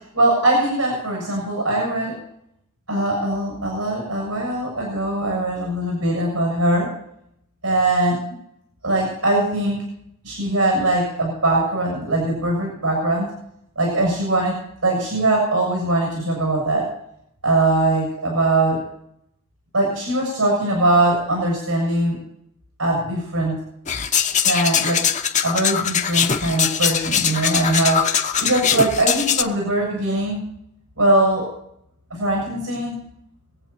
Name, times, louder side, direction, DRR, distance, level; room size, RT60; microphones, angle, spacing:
voice 1, 0.1-2.2 2.9-6.9 7.6-8.1 8.8-9.8 10.2-13.3 13.8-14.6 14.8-16.9 17.4-18.8 19.7-22.2 22.8-23.6 24.4-25.0 25.4-28.0 28.4-30.4 31.0-31.5 32.1-33.0, right 2 dB, 85° right, -1 dB, 7.1 m, -21 dB
sound 1, 23.9-29.4, left 8 dB, 35° left, 1.0 m, -21 dB
25.0 x 8.6 x 4.2 m, 0.75 s
head